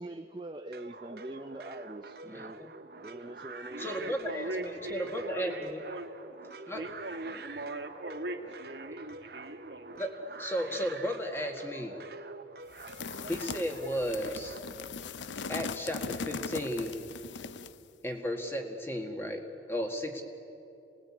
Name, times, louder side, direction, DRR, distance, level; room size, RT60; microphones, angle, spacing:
voice 1, 0.0-2.6 3.0-4.0, right 1 dB, 25° right, 4 dB, 0.6 m, -43 dB
sound 1, 0.7-14.6, right 3 dB, 55° right, 1.0 m, -47 dB
voice 2, 2.2-2.7 3.8-5.9 6.7-6.9 8.9-9.0 10.0-12.0 13.3-14.6 15.5-17.0 18.0-20.2, equal, 15° left, 3 dB, 1.8 m, -34 dB
voice 3, 3.7-6.1 6.7-10.0, right 2 dB, 85° right, 3 dB, 2.3 m, -40 dB
sound 2, 12.8-17.8, left 5 dB, 85° left, 0.6 m, -39 dB
27.5 x 20.0 x 8.6 m, 2.7 s
head